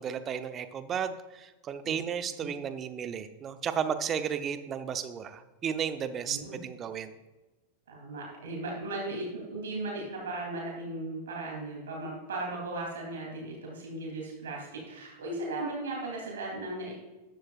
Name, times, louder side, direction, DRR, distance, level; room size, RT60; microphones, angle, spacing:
voice 1, 0.0-7.2, right 8 dB, 25° right, 10 dB, 0.8 m, -34 dB
voice 2, 6.3-6.6 7.9-16.9, right 2 dB, 60° right, -2 dB, 3.3 m, -37 dB
14.0 x 11.5 x 2.5 m, 1.2 s
figure-of-eight pair, 90°, 0 cm